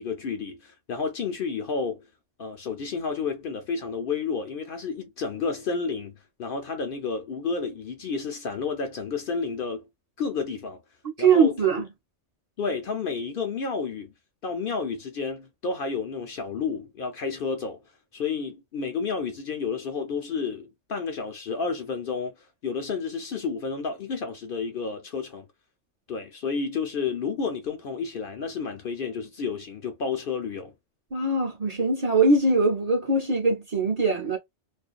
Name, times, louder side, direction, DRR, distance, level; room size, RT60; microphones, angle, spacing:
voice 1, 0.0-2.1 2.4-9.9 10.2-10.8 11.2-11.8 12.6-14.1 14.4-17.8 18.1-22.4 22.6-25.5 26.1-30.7, left 5 dB, 60° left, 0.7 m, -31 dB
voice 2, 11.2-11.9 31.1-34.4, right 3 dB, 40° right, 0.7 m, -22 dB
2.5 x 2.1 x 2.3 m
omnidirectional pair, 1.2 m